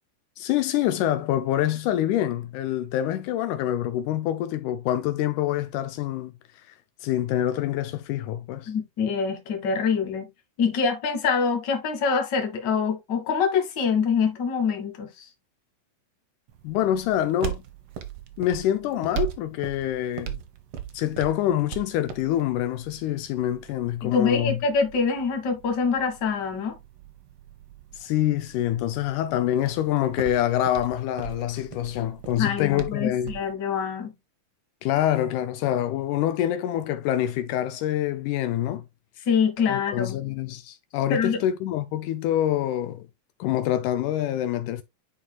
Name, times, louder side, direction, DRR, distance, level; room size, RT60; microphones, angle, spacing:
voice 1, 0.4-6.8 7.0-8.7 16.6-17.6 18.4-20.4 20.9-24.6 27.9-33.3 34.8-38.9 39.7-43.1 43.4-44.8, left 12 dB, 80° left, 2.0 m, -26 dB
voice 2, 8.7-10.3 10.6-15.3 24.0-26.8 32.4-34.1 39.2-40.2 41.1-41.4, left 5 dB, 45° left, 1.6 m, -25 dB
sound 1, 16.5-33.5, right 11 dB, 70° right, 1.3 m, -40 dB
9.8 x 4.3 x 2.2 m
omnidirectional pair, 3.7 m